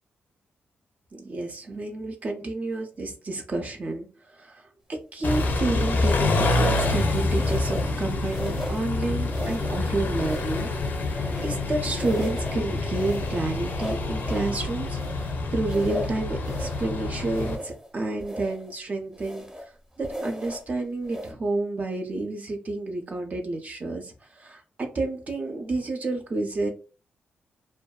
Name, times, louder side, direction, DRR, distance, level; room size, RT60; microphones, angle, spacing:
voice 1, 1.1-19.7 20.0-26.7, right 2 dB, 40° right, 3 dB, 0.5 m, -30 dB
Car / Idling / Accelerating revving vroom, 5.2-17.6, left 2 dB, 55° left, 0.4 m, -27 dB
sound 1, 5.2-5.5 6.4-7.0 7.4-8.0 8.3-8.9 9.3-9.8 10.2-11.7 12.0-12.6 12.9-14.5 14.9-16.9 17.3-17.9 18.2-18.7 19.1-19.7 20.0-20.7 21.0-21.3, equal, 20° right, 0.9 m, -37 dB
2.5 x 2.2 x 2.3 m, 0.34 s
cardioid pair, 80°, 4 cm